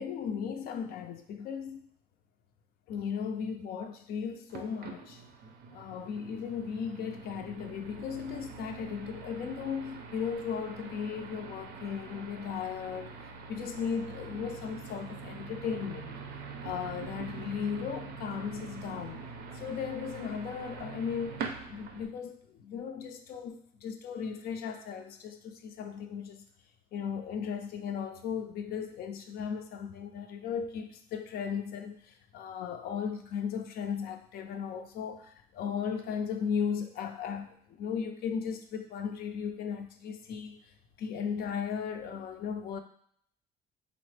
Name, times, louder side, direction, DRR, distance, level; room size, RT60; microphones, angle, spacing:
voice 1, 0.0-1.8 2.9-5.2 5.7-13.1 13.5-16.2 16.6-19.2 19.5-26.5 26.9-40.6 41.0-42.8, left 7 dB, 65° left, 6 dB, 0.4 m, -36 dB
sound 1, 4.5-22.1, right 5 dB, 70° right, 0.5 m, -44 dB
3.7 x 2.0 x 3.2 m, 0.65 s
cardioid pair, 110°, 17 cm